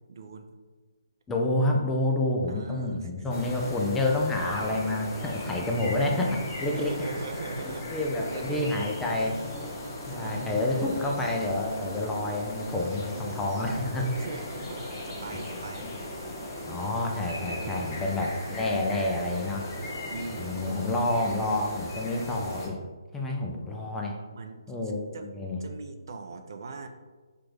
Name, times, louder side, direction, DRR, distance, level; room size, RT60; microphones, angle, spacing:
voice 1, 0.1-0.5 2.5-3.1 6.7-7.9 8.2-9.2 10.1-10.9 14.1-15.9 17.2-18.3 20.1-21.0 24.3-24.6 25.1-25.3 25.6-26.9, right 3 dB, 55° right, 6 dB, 0.4 m, -40 dB
voice 2, 1.3-7.1 7.9-9.4 10.1-14.1 15.3-15.4 16.7-19.7 20.4-22.8 23.1-24.2 24.7-25.6, left 2 dB, 10° left, 0 dB, 0.4 m, -28 dB
sound 1, 3.3-22.7, left 1 dB, 25° left, 0.9 m, -38 dB
4.4 x 2.5 x 3.2 m, 1.3 s
figure-of-eight pair, 145°, 2 cm